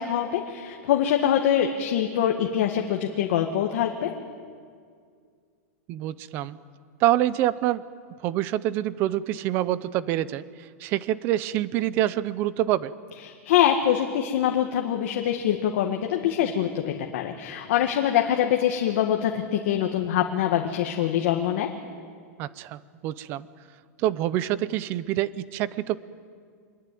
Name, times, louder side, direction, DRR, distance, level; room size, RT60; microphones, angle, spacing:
voice 1, 0.0-4.1 13.3-21.7, left 10 dB, 50° left, 3 dB, 2.0 m, -24 dB
voice 2, 5.9-6.6 7.0-7.8 8.2-10.4 10.8-12.9 22.4-23.5 24.0-26.0, right 13 dB, 25° right, 17 dB, 0.7 m, -26 dB
25.0 x 22.5 x 9.4 m, 2.1 s
supercardioid pair, 180°, 8 cm